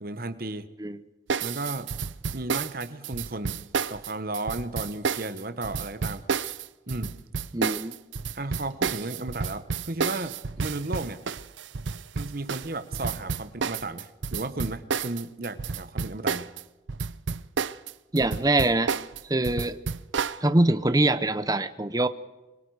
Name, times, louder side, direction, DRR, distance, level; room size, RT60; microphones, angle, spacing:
voice 1, 0.0-0.7 1.4-1.9 2.3-6.2 6.9-7.2 8.3-11.2 12.1-16.5, right 2 dB, 50° right, 10 dB, 1.1 m, -34 dB
sound 1, 1.3-16.6 16.9-20.4, right 5 dB, 80° right, 0.6 m, -30 dB
voice 2, 7.5-8.0 18.1-18.9 19.3-19.8 20.4-22.1, right 2 dB, 20° right, 12 dB, 0.7 m, -23 dB
25.0 x 22.0 x 4.8 m, 1.1 s
head